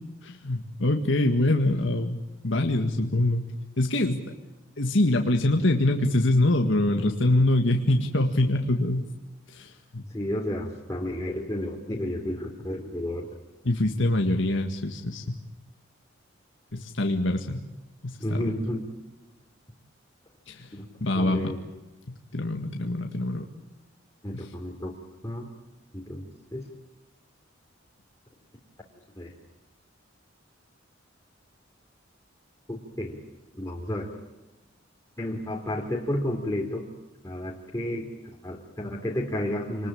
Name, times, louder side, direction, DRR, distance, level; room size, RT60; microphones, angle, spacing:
voice 1, 0.2-3.4 3.8-4.2 4.8-9.0 9.5-10.0 13.7-15.4 16.7-17.6 18.0-18.4 20.5-20.7 21.0-21.5 22.1-23.5 24.3-24.5, left 1 dB, 70° left, 4 dB, 1.9 m, -24 dB
voice 2, 10.1-13.4 18.2-18.9 20.7-20.9 21.1-21.6 24.2-24.9 25.2-25.5 25.9-26.7 29.2-29.3 32.7-33.2 33.5-34.1 35.2-36.9 37.2-38.1 38.4-39.9, left 1 dB, 15° left, -2 dB, 3.1 m, -31 dB
27.0 x 20.5 x 8.7 m, 1.1 s
head